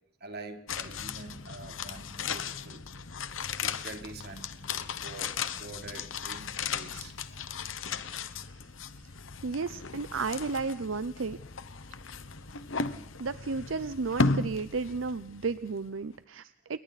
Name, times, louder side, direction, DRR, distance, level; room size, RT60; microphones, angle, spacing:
voice 1, 0.2-2.8 3.6-4.5 4.9-7.7, right 2 dB, 55° right, 5 dB, 3.3 m, -46 dB
sound 1, 0.7-15.9 16.1-16.2, left 4 dB, 90° left, 1.2 m, -36 dB
voice 2, 9.4-11.4 13.2-16.8, right 4 dB, 85° right, 14 dB, 0.7 m, -33 dB
29.0 x 22.0 x 4.2 m, 0.81 s
head